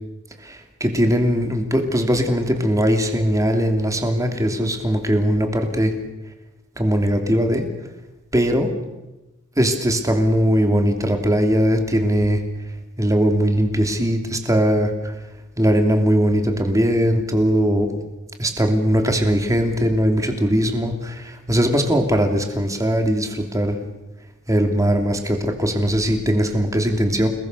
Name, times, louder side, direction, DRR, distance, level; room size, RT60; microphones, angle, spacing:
voice 1, 0.4-5.9 6.8-7.7 8.3-8.7 9.6-12.4 13.0-15.2 15.6-17.9 18.4-23.8 24.5-27.3, equal, 15° right, 5 dB, 3.0 m, -20 dB
29.5 x 20.0 x 6.9 m, 1.0 s
head